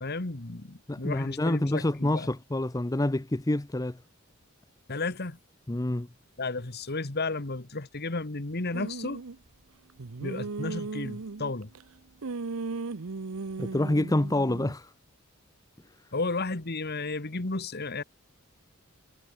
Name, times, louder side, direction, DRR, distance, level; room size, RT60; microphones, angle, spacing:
voice 1, 0.0-2.3 4.9-5.4 6.4-9.2 10.2-11.7 16.1-18.0, left 3 dB, 50° left, 1.7 m, -33 dB
voice 2, 0.9-4.0 5.7-6.1 13.6-14.9, left 1 dB, 15° left, 0.7 m, -27 dB
sound 1, 8.7-9.4 10.0-11.8 12.2-14.7, right 3 dB, 80° right, 0.8 m, -36 dB
head